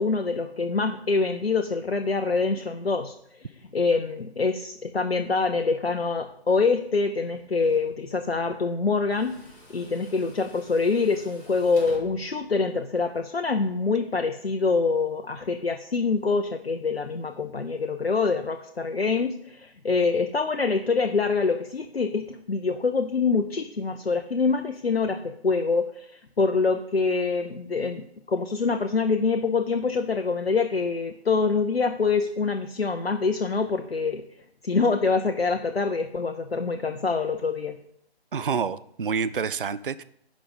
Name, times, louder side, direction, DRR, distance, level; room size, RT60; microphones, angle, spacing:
voice 1, 0.0-9.5 9.7-34.3 34.6-37.8, left 4 dB, 70° left, 6 dB, 0.7 m, -25 dB
Tools, 6.9-13.2, left 1 dB, 50° left, 3.3 m, -51 dB
voice 2, 38.3-40.0, right 6 dB, 55° right, 15 dB, 0.4 m, -28 dB
10.5 x 5.1 x 5.4 m, 0.72 s
figure-of-eight pair, 155°, 32 cm